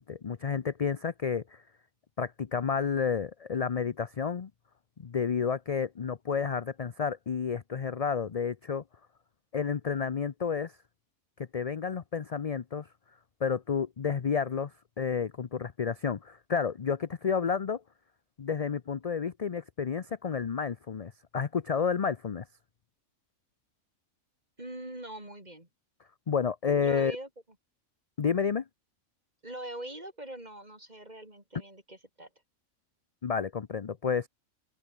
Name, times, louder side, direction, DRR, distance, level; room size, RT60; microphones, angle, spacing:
voice 1, 0.0-1.6 2.2-4.5 5.0-8.8 9.5-10.7 11.4-12.9 13.4-17.8 18.4-22.4 26.3-27.2 28.2-28.6 33.2-34.3, left 6 dB, 40° left, 0.5 m, -30 dB
voice 2, 24.6-25.7 26.8-27.3 29.4-32.3, right 1 dB, 30° right, 5.8 m, -42 dB
open air
omnidirectional pair, 1.4 m